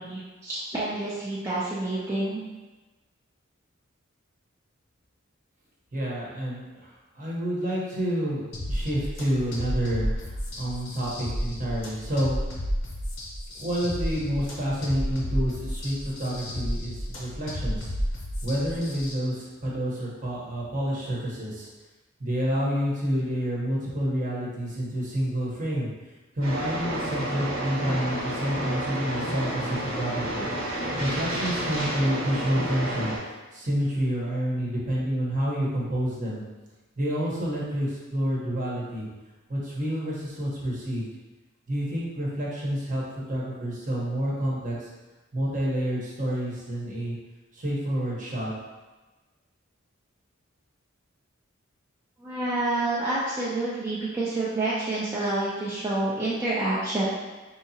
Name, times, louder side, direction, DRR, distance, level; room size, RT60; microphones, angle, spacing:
voice 1, 0.0-2.4 52.2-57.0, right 2 dB, 15° right, -9 dB, 0.5 m, -28 dB
voice 2, 5.9-12.4 13.5-17.9 18.4-21.7 22.2-25.9 26.3-30.5 31.0-36.4 37.0-39.1 39.5-41.1 41.7-43.0 43.3-44.9 45.3-47.2 47.5-48.5, equal, 40° right, -5 dB, 1.0 m, -29 dB
sound 1, 8.5-19.1, equal, 70° left, 0.8 m, -32 dB
sound 2, 26.4-33.2, right 1 dB, 90° right, 1.1 m, -30 dB
4.7 x 2.8 x 2.8 m, 1.2 s
head